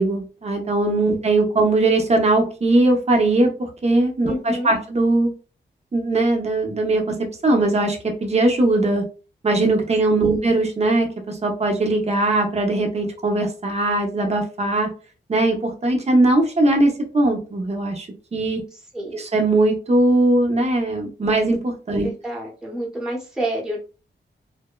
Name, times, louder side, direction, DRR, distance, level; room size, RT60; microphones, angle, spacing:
voice 1, 0.0-5.3 5.9-7.0 7.4-9.0 9.4-14.9 15.3-18.1 18.3-18.6 19.1-22.1, right 2 dB, 35° right, 3 dB, 0.7 m, -20 dB
voice 2, 4.3-4.7 10.2-10.4 18.9-19.2 21.9-23.8, right 1 dB, 5° right, -4 dB, 0.9 m, -29 dB
2.6 x 2.1 x 2.2 m, 0.35 s
wide cardioid pair, 110°, 19 cm